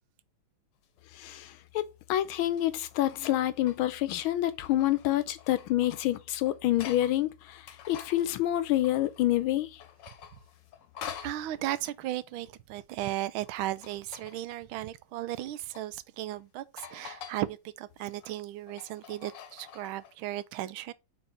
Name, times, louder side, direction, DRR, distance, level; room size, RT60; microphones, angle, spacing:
sound 1, 0.8-1.0 2.2-4.0 4.5-7.2 7.5-9.5 9.8-11.5 13.5-14.5 15.4-15.9 16.3-16.4 16.8-17.4 17.9-20.1, left 8 dB, 65° left, 1.4 m, -47 dB
voice 1, 1.1-9.8, left 14 dB, 85° left, 1.5 m, -28 dB
voice 2, 11.2-20.9, right 14 dB, 85° right, 1.4 m, -36 dB
4.5 x 4.1 x 5.4 m
omnidirectional pair, 2.2 m